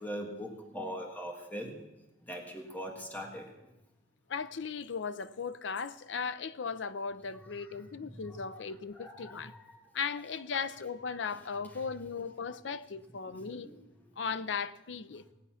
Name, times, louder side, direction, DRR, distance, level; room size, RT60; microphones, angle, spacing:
voice 1, 0.0-1.8 2.2-3.7 7.5-7.7 8.0-8.4 8.9-9.9 10.5-10.7 11.7-11.8 13.4-13.8 14.0-14.1, equal, 10° left, 1.5 m, -42 dB
voice 2, 4.3-9.5 9.9-13.7 14.2-15.2, left 5 dB, 85° left, 0.6 m, -37 dB
18.0 x 8.2 x 5.7 m
head